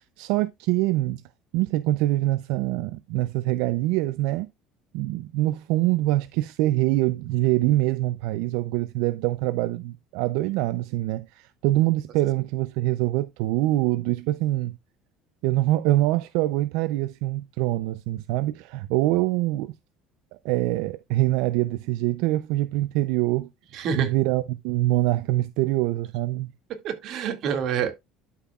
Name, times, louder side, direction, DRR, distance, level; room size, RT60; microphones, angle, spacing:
voice 1, 0.2-1.2 1.5-4.5 4.9-14.7 15.4-19.7 20.4-23.5 23.9-26.5, right 17 dB, 80° right, 0.4 m, -24 dB
voice 2, 23.7-24.1 26.8-27.9, right 7 dB, 55° right, 2.0 m, -27 dB
12.5 x 5.8 x 2.3 m
cardioid pair, 125°, 0 cm